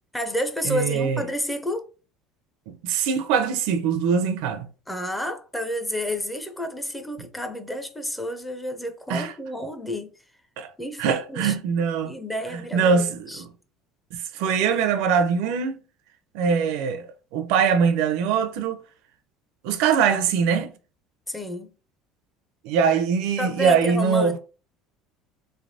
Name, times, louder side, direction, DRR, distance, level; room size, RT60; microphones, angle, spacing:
voice 1, 0.1-1.9 4.9-10.1 10.8-11.5 12.0-13.4 21.3-21.7 23.4-24.4, equal, 5° left, 0.4 m, -30 dB
voice 2, 0.6-1.2 2.7-4.7 9.1-9.3 10.6-10.7 11.0-12.1 12.5-13.5 14.1-15.8 16.3-18.8 19.6-20.7 22.6-24.4, right 6 dB, 65° right, 0.5 m, -22 dB
3.4 x 3.2 x 2.6 m
cardioid pair, 170°, 0 cm